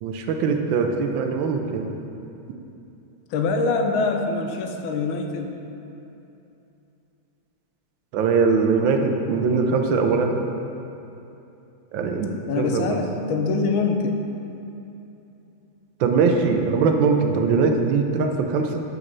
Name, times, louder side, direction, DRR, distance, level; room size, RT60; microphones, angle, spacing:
voice 1, 0.0-1.9 8.1-10.4 11.9-13.0 16.0-18.8, right 5 dB, 80° right, 4 dB, 1.3 m, -21 dB
voice 2, 3.3-5.5 12.5-14.2, left 4 dB, 90° left, 4 dB, 1.5 m, -24 dB
5.4 x 5.0 x 6.1 m, 2.8 s
omnidirectional pair, 2.2 m